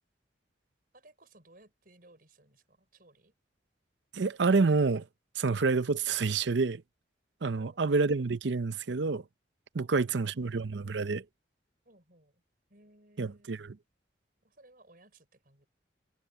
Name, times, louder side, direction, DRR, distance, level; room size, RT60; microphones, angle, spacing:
voice 1, 0.9-3.3 7.5-8.1 9.8-10.9 11.8-12.4 12.7-13.6 14.4-15.7, right 2 dB, 50° right, 5.9 m, -61 dB
voice 2, 4.1-5.0 5.4-6.8 7.4-9.2 9.7-11.2 13.2-13.8, right 4 dB, 75° right, 0.6 m, -28 dB
head